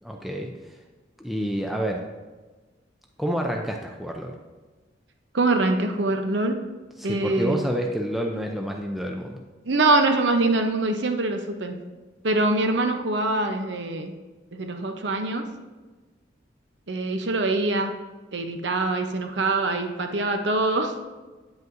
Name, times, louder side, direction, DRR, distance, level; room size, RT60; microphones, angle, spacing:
voice 1, 0.0-0.7 1.2-2.0 3.2-4.3 7.0-9.4, equal, ahead, 1 dB, 0.4 m, -28 dB
voice 2, 5.3-6.6 7.0-7.6 9.6-11.8 12.2-14.1 14.5-15.5 16.9-17.9 18.3-20.9, right 2 dB, 70° right, 5 dB, 0.8 m, -24 dB
9.2 x 8.0 x 2.6 m, 1.3 s
head